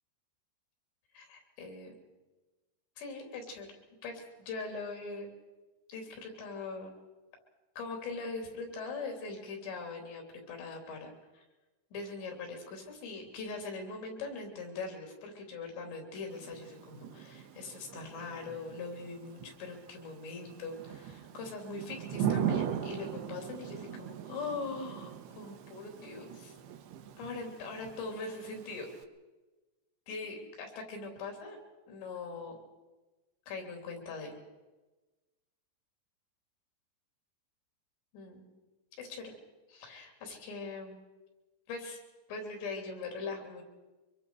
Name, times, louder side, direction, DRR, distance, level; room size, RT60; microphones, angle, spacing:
voice 1, 1.1-1.9 3.0-3.8 4.0-5.3 5.9-6.9 7.8-11.4 11.9-26.5 27.2-28.9 30.1-31.6 31.9-32.6 33.5-34.3 38.1-38.5 39.0-39.3 39.7-41.0 41.7-42.0 42.3-43.6, left 3 dB, 80° left, 3 dB, 5.6 m, -41 dB
Thunder / Rain, 16.3-29.0, right 9 dB, 75° right, 2.9 m, -40 dB
24.0 x 23.0 x 4.9 m, 1.2 s
omnidirectional pair, 4.9 m